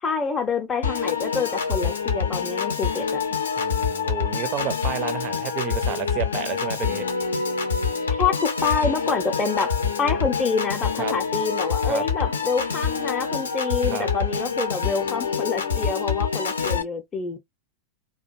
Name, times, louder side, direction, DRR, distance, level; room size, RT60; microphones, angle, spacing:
voice 1, 0.0-3.2 8.2-17.4, left 4 dB, 20° left, 0.5 m, -27 dB
Piano / Organ, 0.8-16.8, left 6 dB, 70° left, 0.5 m, -26 dB
voice 2, 3.6-7.1 11.0-11.1 11.9-12.0 13.9-14.1, right 10 dB, 35° right, 0.4 m, -31 dB
2.4 x 2.1 x 2.5 m
figure-of-eight pair, 90°, 0 cm